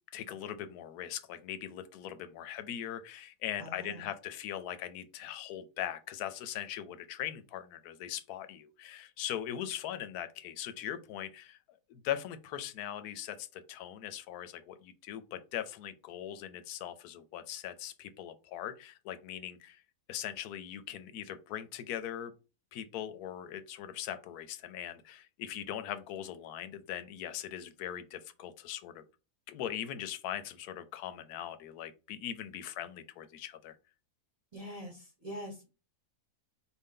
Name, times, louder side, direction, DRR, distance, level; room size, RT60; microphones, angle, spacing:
voice 1, 0.1-11.6 11.9-19.8 20.1-22.3 22.7-29.0 29.5-33.8, left 11 dB, 75° left, 1.1 m, -40 dB
voice 2, 3.6-4.1 34.5-35.7, equal, 30° right, 0.9 m, -44 dB
4.2 x 2.7 x 3.7 m
omnidirectional pair, 1.7 m